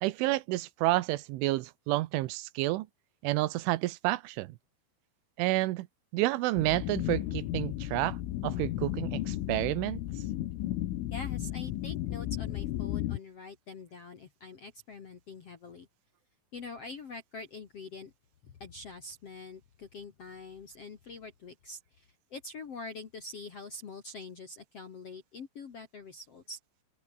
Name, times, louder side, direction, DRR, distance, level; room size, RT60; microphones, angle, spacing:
voice 1, 0.0-2.9 3.2-4.5 5.4-5.9 6.1-8.2 8.4-10.0, right 18 dB, 80° right, 3.3 m, -29 dB
sound 1, 6.6-13.2, left 14 dB, 85° left, 4.1 m, -34 dB
voice 2, 11.1-15.9 16.5-18.1 18.4-26.6, left 3 dB, 55° left, 1.8 m, -45 dB
open air
omnidirectional pair, 5.6 m